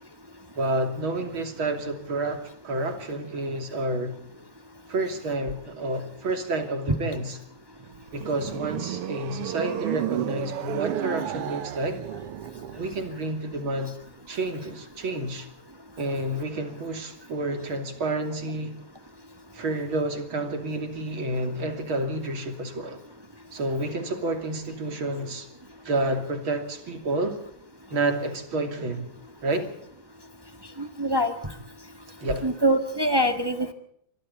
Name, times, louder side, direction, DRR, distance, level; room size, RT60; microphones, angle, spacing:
voice 1, 0.5-4.2 4.9-7.4 8.1-12.0 12.8-13.9 14.3-15.5 16.0-18.7 19.5-23.0 23.5-25.5 25.8-27.4 27.9-29.1 29.4-29.7 32.2-32.5, right 2 dB, 45° right, 6 dB, 3.5 m, -29 dB
sound 1, 7.8-13.2, right 11 dB, 65° right, 1.6 m, -32 dB
voice 2, 30.8-31.3 32.4-33.7, right 1 dB, 25° right, 7 dB, 0.5 m, -24 dB
26.5 x 23.5 x 4.2 m, 0.68 s
omnidirectional pair, 3.4 m